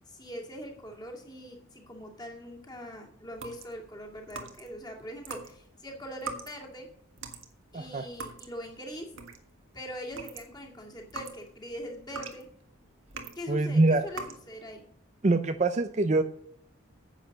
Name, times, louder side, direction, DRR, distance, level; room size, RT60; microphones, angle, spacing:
voice 1, 0.1-6.9 7.7-9.1 9.7-12.5 13.4-14.8, equal, 20° left, 0 dB, 2.2 m, -42 dB
sound 1, 3.3-4.8 5.2-9.6 10.0-13.5 14.0-14.5, right 3 dB, 70° right, 1.6 m, -42 dB
voice 2, 7.7-8.1 13.5-14.0 15.2-16.2, right 2 dB, 35° right, 9 dB, 0.5 m, -24 dB
10.0 x 8.1 x 6.4 m, 0.68 s
head